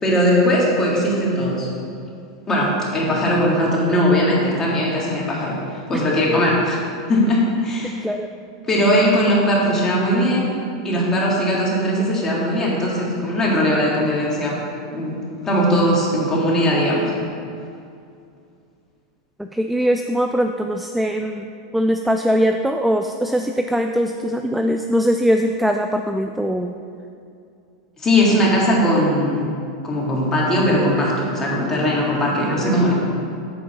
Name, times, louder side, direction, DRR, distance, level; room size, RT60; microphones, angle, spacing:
voice 1, 0.0-1.7 2.5-6.8 7.1-7.9 8.7-10.5 10.8-14.6 14.9-17.1 28.0-29.5 29.8-32.9, equal, 20° left, -4 dB, 2.1 m, -19 dB
voice 2, 19.4-21.5 21.7-26.7 32.6-32.9, equal, ahead, 5 dB, 0.3 m, -21 dB
8.6 x 3.9 x 6.9 m, 2.4 s
supercardioid pair, 125°, 3 cm